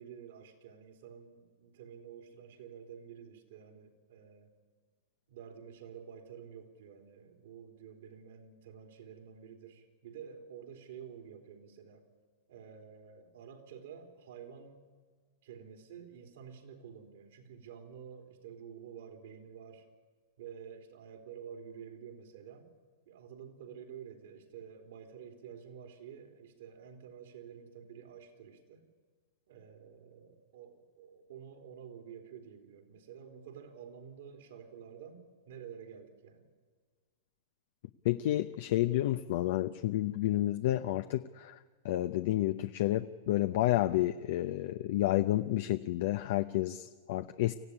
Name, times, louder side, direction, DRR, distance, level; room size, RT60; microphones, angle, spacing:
voice 1, 0.0-4.5 5.3-12.0 12.5-14.8 15.4-19.8 20.4-22.7 23.0-28.9 29.5-36.5, right 7 dB, 70° right, 5 dB, 3.7 m, -50 dB
voice 2, 38.0-41.5 41.8-47.5, left 15 dB, 60° left, 10 dB, 0.7 m, -30 dB
24.5 x 15.0 x 9.9 m, 1.6 s
hypercardioid pair, 135°, 0 cm